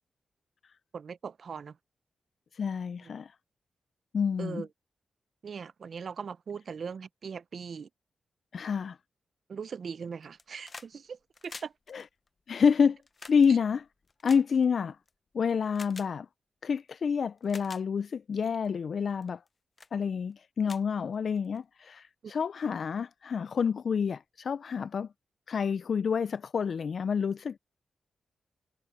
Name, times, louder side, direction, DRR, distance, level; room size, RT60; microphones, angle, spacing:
voice 1, 0.9-1.8 3.0-3.1 4.4-4.7 5.4-7.9 9.5-11.7 22.2-22.3, right 6 dB, 65° right, 0.6 m, -40 dB
voice 2, 2.5-3.3 4.1-4.6 8.5-9.0 11.9-12.0 12.5-13.0 13.3-13.8 14.2-15.0 15.3-16.3 16.6-19.4 19.9-25.1 25.5-27.6, left 6 dB, 65° left, 0.3 m, -28 dB
sound 1, 10.2-10.9 11.2-15.1 15.7-16.1 16.9-17.0 17.4-17.8 18.4-18.7 19.2-19.5 19.8-19.9 20.3-20.4 20.6-21.6 22.7-22.8, left 4 dB, 40° left, 0.7 m, -48 dB
cardioid pair, 85°, 0 cm